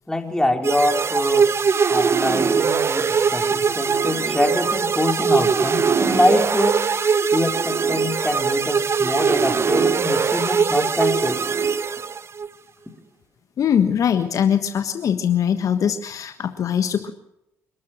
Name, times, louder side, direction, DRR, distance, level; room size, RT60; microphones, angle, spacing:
voice 1, 0.1-1.5 1.8-11.4, left 1 dB, 10° left, 4 dB, 4.4 m, -24 dB
sound 1, 0.6-12.5, right 6 dB, 40° right, 1.0 m, -21 dB
voice 2, 13.6-17.1, left 8 dB, 60° left, 8 dB, 1.4 m, -21 dB
27.5 x 13.0 x 7.6 m, 0.80 s
hypercardioid pair, 45°, 7 cm